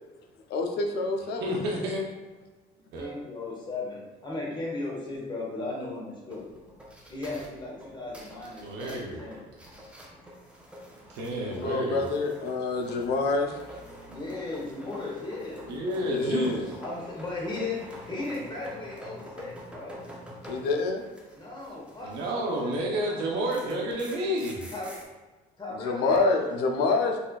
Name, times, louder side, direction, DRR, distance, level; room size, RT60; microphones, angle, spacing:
voice 1, 0.5-1.5 11.4-13.5 16.0-16.7 20.5-21.0 25.8-27.2, left 3 dB, 75° left, 3 dB, 0.5 m, -27 dB
voice 2, 1.4-2.0 2.9-3.1 8.6-9.3 11.1-12.1 15.7-16.7 22.0-24.6, equal, 85° right, -2 dB, 0.6 m, -30 dB
voice 3, 3.0-6.5 7.1-9.4 14.1-15.7 16.8-20.0 21.3-23.9 24.7-24.9 25.6-27.0, left 2 dB, 25° left, -3 dB, 1.0 m, -37 dB
sound 1, 6.3-22.9 23.2-25.0, equal, 5° right, 0.6 m, -47 dB
4.1 x 2.4 x 2.3 m, 1.2 s
cardioid pair, 110°, 17 cm